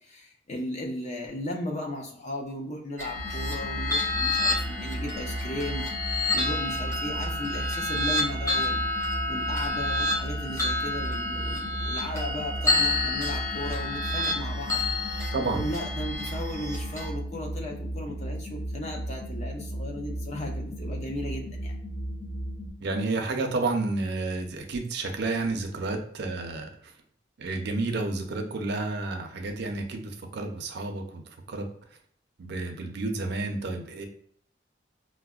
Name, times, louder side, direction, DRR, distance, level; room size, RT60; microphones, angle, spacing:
voice 1, 0.0-8.8 9.3-21.7, left 1 dB, 35° left, 1 dB, 0.6 m, -36 dB
sound 1, 3.0-17.1, left 2 dB, 15° left, 0.9 m, -29 dB
sound 2, 3.2-22.7, right 1 dB, 65° left, 0.8 m, -35 dB
voice 2, 15.3-15.7 22.8-26.9 27.4-31.2 31.5-31.7 32.4-34.1, right 3 dB, 60° right, 4 dB, 0.5 m, -30 dB
4.6 x 2.1 x 2.3 m, 0.65 s
head